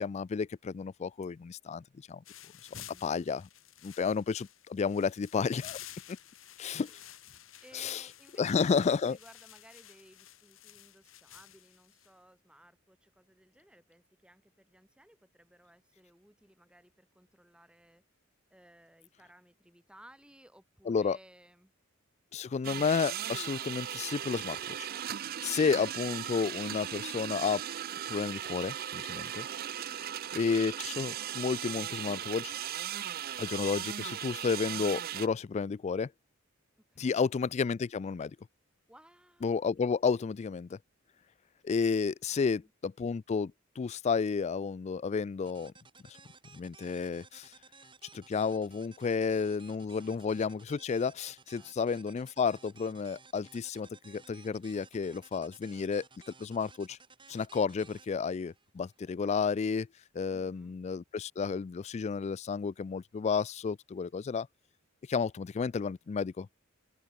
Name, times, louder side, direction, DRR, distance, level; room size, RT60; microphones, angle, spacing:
voice 1, 0.0-2.2 3.0-3.4 3.8-5.8 6.1-6.2 6.6-6.9 7.7-8.0 8.4-9.2 20.9-21.2 22.3-24.9 25.4-27.6 28.1-29.5 30.3-32.5 33.4-36.1 37.0-38.4 39.4-40.8 41.6-45.7 46.1-46.2 46.5-47.5 48.1-56.1 56.4-57.0 57.3-59.9 60.1-64.5 65.1-66.5, left 5 dB, 35° left, 0.3 m, -31 dB
sound 1, 2.3-12.1, left 11 dB, 75° left, 3.8 m, -52 dB
voice 2, 2.7-3.1 6.8-7.2 7.6-18.0 18.5-21.7 22.4-22.6 29.9-30.3 36.9-37.3 38.9-39.6 42.3-42.7 50.0-50.2 51.6-51.7 60.3-60.8, right 1 dB, 5° right, 3.1 m, -59 dB
sound 2, 22.6-35.3, right 10 dB, 45° right, 0.5 m, -38 dB
sound 3, 45.5-59.1, right 4 dB, 25° right, 6.7 m, -57 dB
open air
head